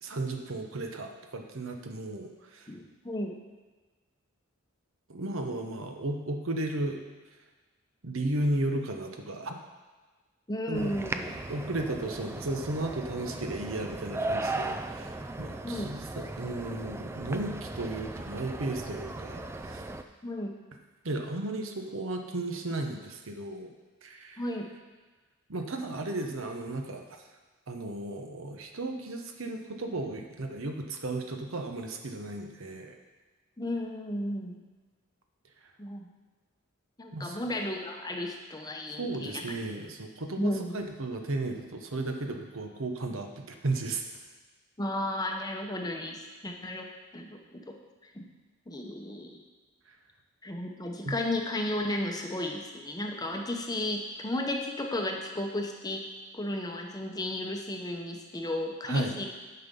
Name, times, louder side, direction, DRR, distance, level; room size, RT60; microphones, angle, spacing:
voice 1, 0.0-2.7 5.1-7.0 8.0-9.6 10.7-10.9 11.5-19.8 21.0-23.7 24.0-24.4 25.5-27.1 27.7-33.0 37.1-37.4 39.0-44.0 51.0-51.2 58.8-59.2, right 2 dB, 65° right, 4 dB, 0.9 m, -34 dB
voice 2, 2.7-3.4 10.5-11.3 15.6-16.0 20.2-20.6 24.4-24.7 33.6-34.6 35.8-36.1 37.0-39.5 40.4-40.7 44.8-47.8 48.1-48.3 48.7-49.4 50.4-59.3, left 1 dB, 20° left, 2 dB, 0.8 m, -34 dB
sound 1, 10.7-20.0, right 2 dB, 10° right, 0.3 m, -37 dB
9.4 x 5.8 x 5.4 m, 1.3 s
head